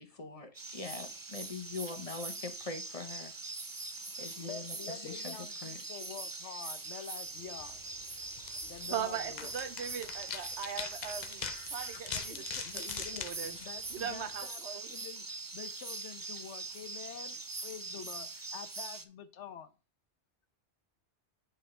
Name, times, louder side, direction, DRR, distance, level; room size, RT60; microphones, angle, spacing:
voice 1, 0.0-3.3 4.2-5.8, left 3 dB, 30° left, 1.1 m, -43 dB
sound 1, 0.5-19.0, right 3 dB, 25° right, 0.5 m, -42 dB
voice 2, 4.0-7.9 8.6-9.5 11.4-14.6 14.9-15.3 15.5-19.7, left 8 dB, 75° left, 1.1 m, -48 dB
sound 2, 7.5-14.4, left 7 dB, 45° left, 0.6 m, -44 dB
voice 3, 8.9-13.6 13.9-14.9, right 8 dB, 70° right, 1.0 m, -40 dB
8.4 x 5.5 x 3.3 m
omnidirectional pair, 1.2 m